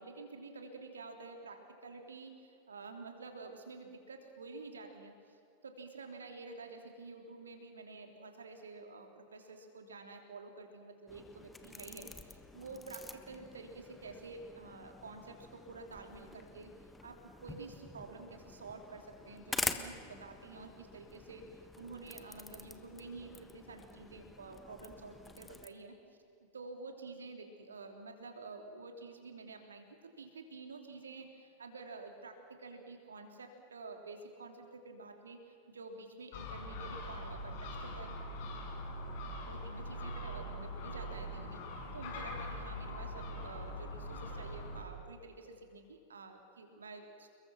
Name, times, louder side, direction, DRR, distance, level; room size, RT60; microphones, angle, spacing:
voice 1, 0.0-5.1 5.6-16.7 17.0-25.9 26.5-29.8 30.2-38.2 39.4-47.3, right 3 dB, 70° right, 4 dB, 3.3 m, -49 dB
sound 1, 11.1-25.7, left 3 dB, 10° left, 1.5 m, -46 dB
Gull seagull, 36.3-44.8, left 1 dB, 50° left, 6.3 m, -42 dB
30.0 x 22.0 x 6.2 m, 2.5 s
figure-of-eight pair, 90°, 0 cm